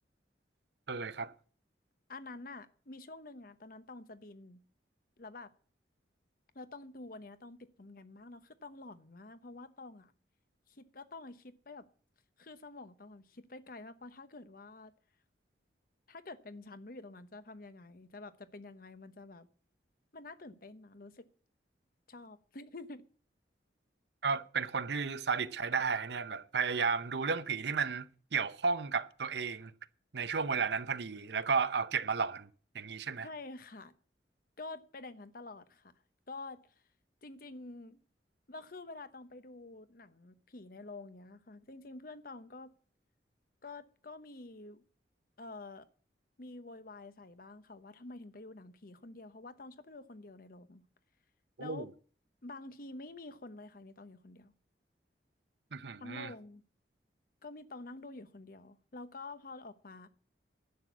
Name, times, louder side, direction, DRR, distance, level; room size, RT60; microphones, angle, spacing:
voice 1, 0.9-1.3 24.2-29.7 30.1-32.5 32.7-33.3 51.6-51.9 55.7-56.3, right 5 dB, 70° right, 0.7 m, -33 dB
voice 2, 2.1-4.6 5.2-5.5 6.5-10.1 10.7-11.9 12.4-14.9 16.1-19.5 20.1-21.3 22.1-23.0 33.2-33.9 34.6-35.9 36.3-36.6 37.2-38.0 38.5-42.7 43.6-44.8 45.4-45.9 46.4-50.8 51.6-51.9 52.4-54.5 56.0-56.6 57.4-60.1, left 2 dB, 55° left, 0.9 m, -48 dB
11.5 x 6.3 x 8.3 m
head